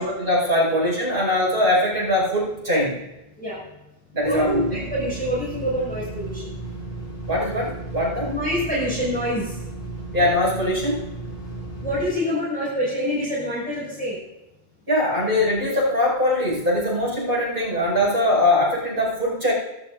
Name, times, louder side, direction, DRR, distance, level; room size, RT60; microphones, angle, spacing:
voice 1, 0.0-3.0 4.1-4.8 7.3-8.3 10.1-11.0 14.9-19.5, left 1 dB, 65° right, -4 dB, 6.4 m, -21 dB
sound 1, 4.2-12.1, right 3 dB, 65° left, 6.8 m, -34 dB
voice 2, 4.3-6.4 8.2-9.6 11.8-14.2, equal, 10° left, -8 dB, 6.1 m, -26 dB
22.5 x 12.0 x 2.7 m, 0.93 s
omnidirectional pair, 1.0 m